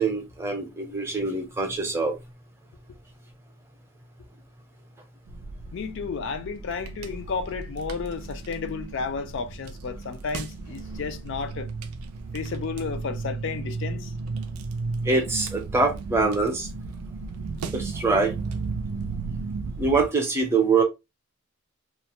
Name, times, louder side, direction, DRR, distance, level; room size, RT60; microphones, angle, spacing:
voice 1, 0.0-2.1 15.1-16.7 17.7-18.3 19.8-20.8, right 4 dB, 10° right, 0.6 m, -24 dB
sound 1, 5.3-20.1, right 4 dB, 85° right, 0.4 m, -34 dB
voice 2, 5.7-11.7 12.3-14.1, left 5 dB, 55° left, 0.3 m, -32 dB
2.4 x 2.1 x 2.8 m
head